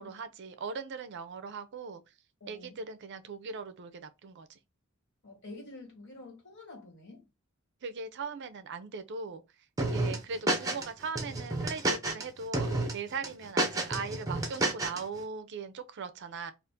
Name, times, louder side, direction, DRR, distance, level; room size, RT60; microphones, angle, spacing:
voice 1, 0.0-2.0 2.5-4.6 7.8-9.4 9.9-16.5, right 5 dB, 55° right, 0.4 m, -39 dB
voice 2, 2.4-2.8 5.2-7.3 9.9-10.3, left 2 dB, 55° left, 1.6 m, -48 dB
sound 1, 9.8-10.9 11.2-12.2 12.5-12.9 13.2-15.0, right 2 dB, 15° right, 0.6 m, -30 dB
2.5 x 2.4 x 3.5 m
head